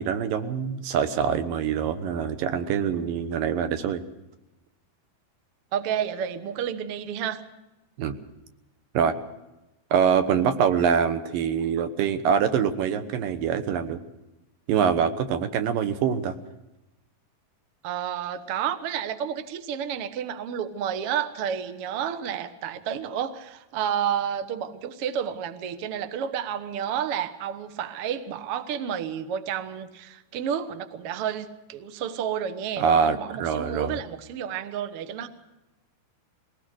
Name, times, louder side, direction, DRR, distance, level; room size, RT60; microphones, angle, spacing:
voice 1, 0.0-4.0 8.0-8.2 8.9-9.1 9.9-14.0 14.7-16.4 32.8-34.0, right 7 dB, 65° right, 9 dB, 2.7 m, -24 dB
voice 2, 5.7-7.4 17.8-35.3, right 8 dB, 85° right, 10 dB, 1.2 m, -30 dB
22.0 x 18.5 x 6.5 m, 0.98 s
omnidirectional pair, 4.6 m